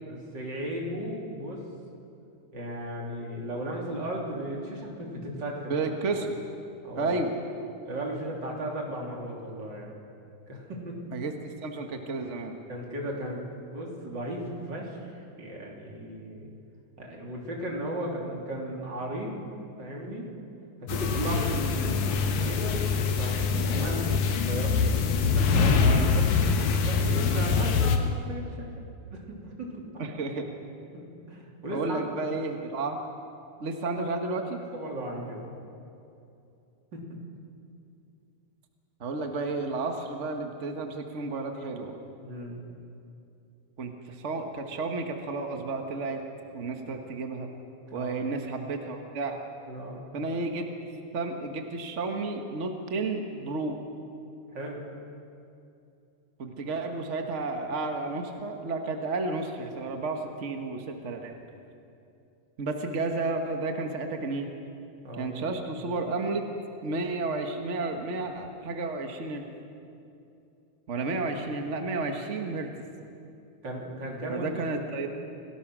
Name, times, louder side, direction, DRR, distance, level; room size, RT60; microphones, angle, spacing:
voice 1, 0.0-1.7 2.5-5.7 6.8-7.2 7.9-10.0 10.5-11.1 12.7-13.4 13.7-16.5 17.0-19.5 19.8-20.3 20.8-22.8 23.2-26.3 26.5-28.7 29.1-29.9 30.9-32.0 34.7-35.6 36.9-37.2 42.2-42.6 47.9-48.2 49.7-50.0 54.5-54.9 65.0-65.4 73.6-74.8, right 1 dB, 35° right, -1 dB, 3.6 m, -36 dB
voice 2, 5.7-6.4 7.0-7.3 11.1-12.6 25.8-26.1 30.0-30.5 31.7-33.0 33.6-34.6 39.0-42.0 43.8-46.2 46.5-47.5 47.9-49.4 50.1-50.7 51.1-53.8 56.4-61.3 62.6-64.5 65.2-66.4 66.8-69.5 70.9-72.7 74.3-75.1, right 3 dB, 50° right, 4 dB, 0.8 m, -32 dB
sound 1, 20.9-28.0, left 5 dB, 75° left, 2.7 m, -24 dB
29.0 x 18.0 x 6.2 m, 2.6 s
omnidirectional pair, 3.5 m